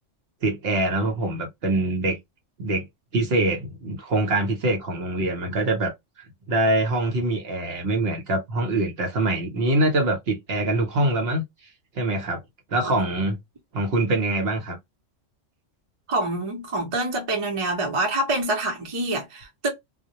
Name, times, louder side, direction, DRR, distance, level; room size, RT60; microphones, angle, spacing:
voice 1, 0.4-2.2 2.6-2.8 3.1-5.9 6.5-11.4 12.0-12.4 12.7-13.4 13.7-14.8, right 2 dB, 60° right, 0.9 m, -24 dB
voice 2, 16.1-19.7, right 2 dB, 35° right, 0.6 m, -26 dB
2.2 x 2.1 x 2.7 m
omnidirectional pair, 1.3 m